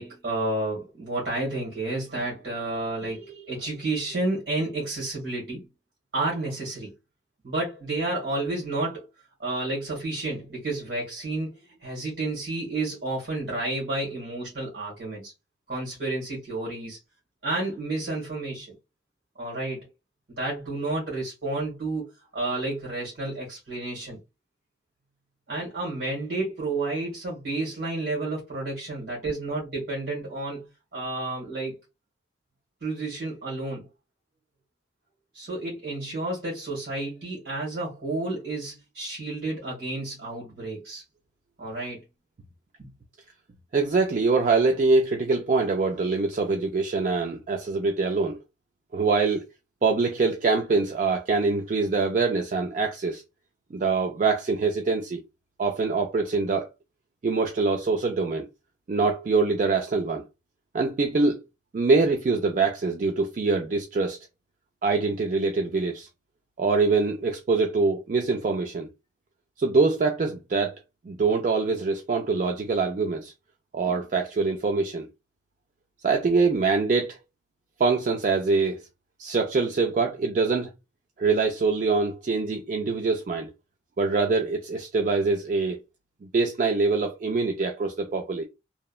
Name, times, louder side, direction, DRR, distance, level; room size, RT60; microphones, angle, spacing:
voice 1, 0.0-5.6 6.1-6.9 7.4-9.1 9.4-11.5 11.8-15.3 15.7-17.0 17.4-18.7 19.4-19.8 20.4-24.2 25.5-30.6 30.9-31.7 32.8-33.9 35.3-41.0 41.6-42.0 42.8-42.9, right 2 dB, 75° right, 1.3 m, -31 dB
voice 2, 43.7-48.4 48.9-49.5 49.8-53.2 53.7-55.2 55.6-56.7 57.2-58.5 58.9-60.2 60.7-61.4 61.7-64.2 64.8-66.1 66.6-68.9 69.6-70.8 71.1-73.3 73.7-75.1 76.0-77.2 77.8-78.8 79.2-80.7 81.2-83.5 84.0-85.8 86.3-88.4, right 4 dB, 45° right, 0.3 m, -24 dB
2.8 x 2.1 x 2.3 m
head